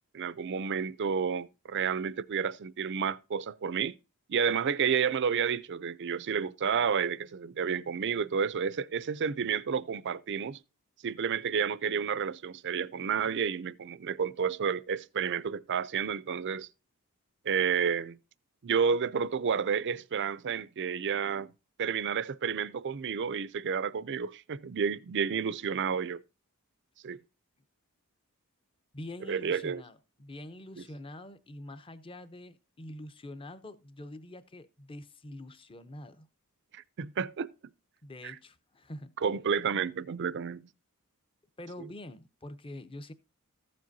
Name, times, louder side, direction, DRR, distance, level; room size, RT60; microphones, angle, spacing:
voice 1, 0.1-3.9 4.3-10.6 11.0-16.7 17.5-18.2 18.6-21.5 21.8-26.2 27.0-27.2 29.3-29.8 36.7-37.5 38.2-38.3 39.2-40.7 41.8-41.9, right 6 dB, 55° right, 0.5 m, -30 dB
voice 2, 28.9-36.3 38.0-39.1 41.6-43.1, left 1 dB, 25° left, 0.7 m, -45 dB
14.5 x 7.6 x 2.7 m
head